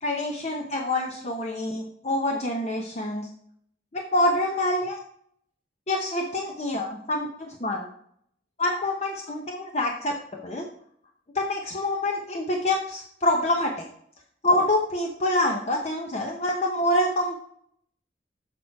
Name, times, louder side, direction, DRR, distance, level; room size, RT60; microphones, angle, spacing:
voice 1, 0.0-3.3 3.9-5.0 5.9-7.9 8.6-10.2 10.4-10.7 11.3-13.9 14.4-17.4, left 1 dB, 40° left, 2 dB, 0.8 m, -26 dB
6.8 x 6.1 x 4.6 m, 0.67 s
head